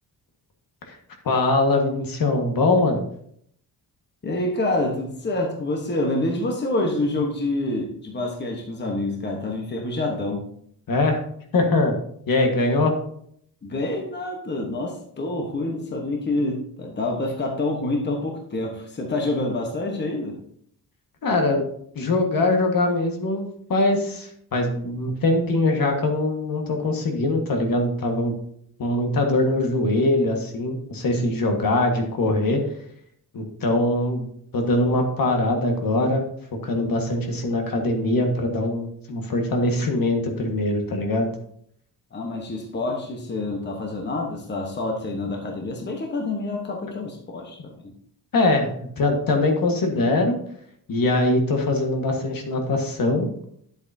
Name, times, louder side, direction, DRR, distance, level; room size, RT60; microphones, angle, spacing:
voice 1, 1.2-3.0 10.9-11.2 11.5-11.9 12.3-13.0 21.2-21.6 21.9-28.3 28.8-32.6 33.3-34.3 34.5-36.2 36.6-41.3 48.3-50.4 50.9-53.3, left 2 dB, 60° left, 2 dB, 1.7 m, -22 dB
voice 2, 4.2-10.4 13.6-20.4 42.1-47.9, left 2 dB, 25° left, 1 dB, 1.2 m, -27 dB
10.5 x 8.0 x 2.8 m, 0.67 s
wide cardioid pair, 165°, 39 cm